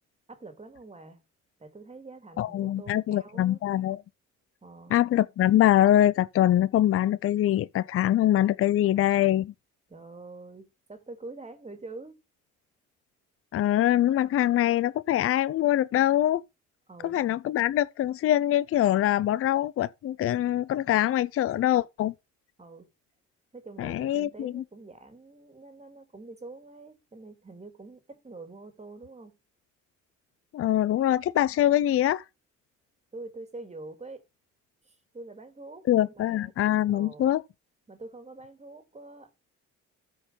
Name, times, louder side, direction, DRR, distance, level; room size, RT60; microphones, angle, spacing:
voice 1, 0.3-1.2 1.6-3.6 4.6-5.0 9.9-12.2 16.9-17.2 22.6-22.9 23.5-29.4 33.1-34.2 34.8-36.5 36.9-37.3 37.9-39.4, right 3 dB, 20° right, 2.2 m, -45 dB
voice 2, 2.4-4.0 4.9-9.5 13.5-16.4 17.0-22.1 23.8-24.6 30.5-32.2 35.9-37.4, left 12 dB, 50° left, 0.4 m, -24 dB
13.5 x 4.6 x 5.1 m
cardioid pair, 90°, 30 cm